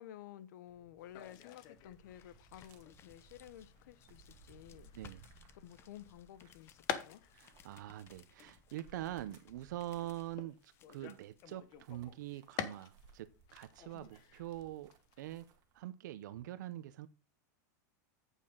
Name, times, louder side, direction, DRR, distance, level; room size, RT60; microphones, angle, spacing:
voice 1, 0.0-5.3 5.5-7.2 13.9-14.1, left 12 dB, 70° left, 0.8 m, -53 dB
sound 1, 0.7-11.5, left 8 dB, 25° left, 0.7 m, -64 dB
sound 2, 1.0-13.1 13.5-15.4, left 10 dB, 40° left, 1.0 m, -49 dB
sound 3, 1.8-15.8, right 4 dB, 40° right, 1.9 m, -64 dB
voice 2, 7.3-14.9 15.2-15.4 15.7-17.1, right 14 dB, 75° right, 0.6 m, -44 dB
8.6 x 8.3 x 3.7 m
supercardioid pair, 145°, 10 cm